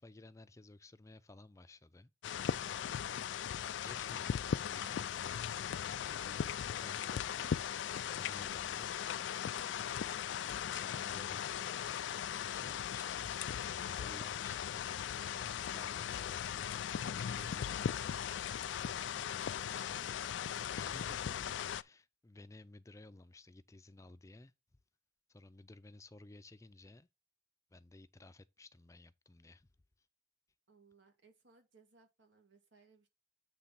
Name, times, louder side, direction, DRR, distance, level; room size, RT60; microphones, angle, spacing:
voice 1, 0.0-2.1 3.7-5.0 5.8-7.6 8.1-9.0 10.4-11.5 12.5-13.3 13.6-18.2 19.7-20.1 20.7-21.5 21.7-24.5 25.3-27.1 27.7-29.7, left 2 dB, 15° left, 0.4 m, -56 dB
sound 1, 2.2-21.8, left 9 dB, 90° left, 0.4 m, -38 dB
voice 2, 19.7-20.8 30.7-33.1, right 4 dB, 85° right, 2.2 m, -66 dB
8.3 x 3.4 x 5.7 m
head